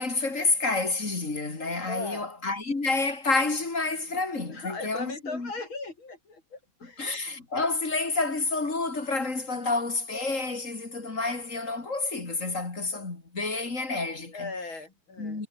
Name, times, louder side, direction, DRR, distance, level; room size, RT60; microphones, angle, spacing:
voice 1, 0.0-5.5 6.8-14.5 15.2-15.5, left 3 dB, 40° left, 3.6 m, -29 dB
voice 2, 1.9-2.3 4.5-7.1 7.5-7.7 9.5-9.7 14.3-15.5, left 3 dB, 85° left, 6.2 m, -38 dB
omnidirectional pair, 2.2 m